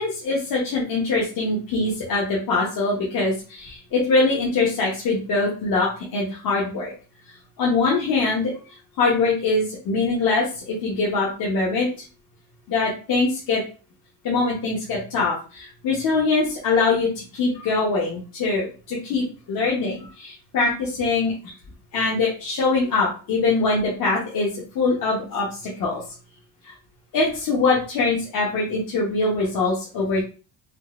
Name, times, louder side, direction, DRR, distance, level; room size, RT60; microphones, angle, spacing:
voice 1, 0.0-6.9 7.6-8.5 9.0-11.9 12.7-13.6 14.2-21.3 21.9-26.0 26.6-26.7 27.1-30.2, left 3 dB, 50° left, -5 dB, 0.9 m, -23 dB
3.8 x 2.3 x 2.4 m, 0.36 s
cardioid pair, 145°, 42 cm